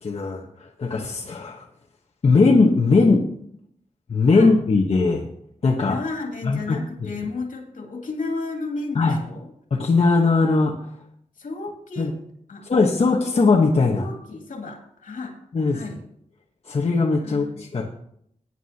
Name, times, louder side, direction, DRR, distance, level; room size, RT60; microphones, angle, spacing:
voice 1, 0.0-1.6 2.2-3.3 4.1-5.3 5.6-5.9 6.4-7.1 8.9-9.2 9.7-10.9 12.0-12.1 12.7-14.1 15.5-15.8 16.6-17.8, left 3 dB, 50° left, -2 dB, 1.2 m, -19 dB
voice 2, 5.8-9.5 11.4-12.2 12.5-12.6 13.9-15.4 15.7-16.0 17.2-17.5, left 3 dB, 75° left, 2 dB, 2.5 m, -33 dB
16.0 x 9.6 x 2.9 m, 0.70 s
wide cardioid pair, 140°, 14 cm